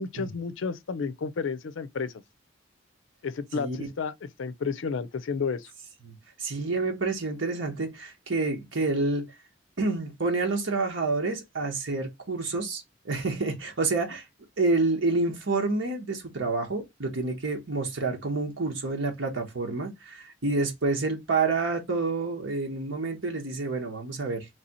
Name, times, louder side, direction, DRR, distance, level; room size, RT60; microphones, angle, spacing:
voice 1, 0.0-2.1 3.2-5.7, left 5 dB, 85° left, 0.5 m, -31 dB
voice 2, 3.5-3.9 6.0-6.1 6.4-9.3 9.8-14.2 14.6-24.5, right 3 dB, 85° right, 1.1 m, -28 dB
3.3 x 2.7 x 4.1 m
head